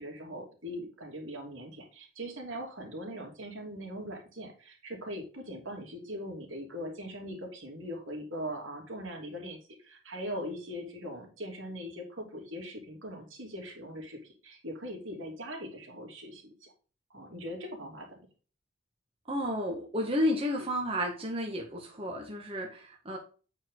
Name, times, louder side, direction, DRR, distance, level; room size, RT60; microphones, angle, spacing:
voice 1, 0.0-16.7 17.1-18.2, equal, 85° right, 0 dB, 2.9 m, -41 dB
voice 2, 19.3-23.2, equal, 30° right, 0 dB, 1.4 m, -32 dB
8.6 x 4.8 x 3.8 m, 0.36 s
head